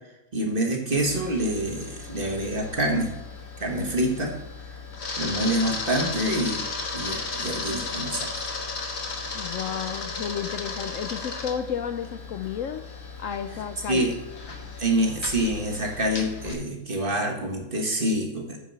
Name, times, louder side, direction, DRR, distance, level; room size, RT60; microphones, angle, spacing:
voice 1, 0.3-3.1 3.6-4.4 5.2-6.6 6.9-8.5 13.9-14.1 14.8-18.6, right 1 dB, 35° right, 1 dB, 1.6 m, -26 dB
Camera, 0.9-16.5, left 3 dB, 50° left, 1.4 m, -35 dB
voice 2, 9.3-12.8 13.2-14.1, left 8 dB, 70° left, 9 dB, 0.9 m, -32 dB
8.8 x 4.8 x 6.7 m, 0.99 s
omnidirectional pair, 1.6 m